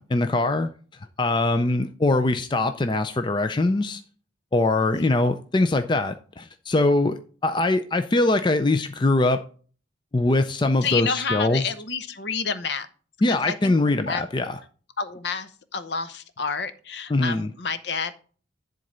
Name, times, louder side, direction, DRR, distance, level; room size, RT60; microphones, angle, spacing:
voice 1, 0.1-0.7 1.2-4.0 4.5-9.4 10.1-11.7 13.2-14.6 17.1-17.5, left 2 dB, 25° left, 0.4 m, -22 dB
voice 2, 10.8-12.9 13.3-13.7 14.1-14.2 15.0-18.1, left 5 dB, 60° left, 0.8 m, -29 dB
10.5 x 3.8 x 5.4 m
head